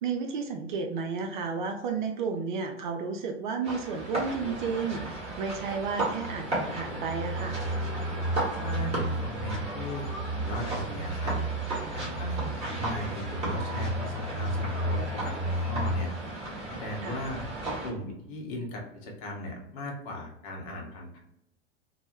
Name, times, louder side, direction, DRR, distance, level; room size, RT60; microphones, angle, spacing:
voice 1, 0.0-7.6 17.0-17.2, right 5 dB, 45° right, 4 dB, 0.4 m, -32 dB
sound 1, 3.6-17.9, right 2 dB, 15° right, 1.0 m, -35 dB
sound 2, 6.2-16.1, right 1 dB, 70° left, 0.7 m, -33 dB
voice 2, 8.6-11.4 11.9-16.1 16.7-17.4 17.8-21.2, left 1 dB, 40° left, 0 dB, 0.8 m, -38 dB
2.2 x 2.0 x 3.0 m, 0.80 s
figure-of-eight pair, 90°, 35 cm